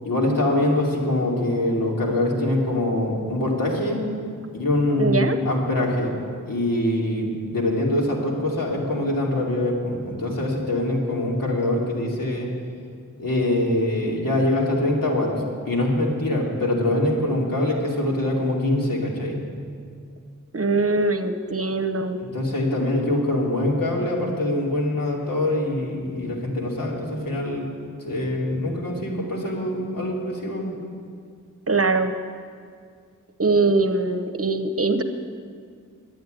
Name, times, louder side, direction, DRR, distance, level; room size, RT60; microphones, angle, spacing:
voice 1, 0.0-4.0 4.5-6.1 6.5-12.5 13.2-15.3 15.7-19.4 22.2-27.7 28.0-30.7, left 1 dB, 85° left, -3 dB, 2.8 m, -24 dB
voice 2, 5.0-5.4 20.5-22.2 31.7-32.1 33.4-35.0, right 3 dB, 45° right, 9 dB, 0.9 m, -22 dB
11.5 x 9.3 x 9.1 m, 2.1 s
wide cardioid pair, 70°, 33 cm